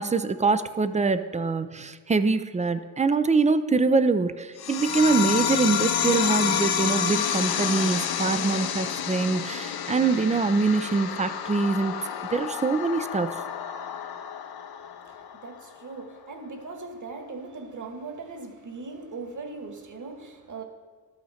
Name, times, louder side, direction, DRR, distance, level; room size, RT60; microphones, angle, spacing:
voice 1, 0.0-11.9 12.3-13.4, right 4 dB, 15° right, 12 dB, 0.5 m, -24 dB
sound 1, 4.6-15.6, left 8 dB, 50° left, 0.8 m, -29 dB
voice 2, 15.0-20.6, right 3 dB, 35° right, 4 dB, 1.7 m, -39 dB
12.5 x 5.9 x 4.3 m, 1.5 s
supercardioid pair, 65°, 49 cm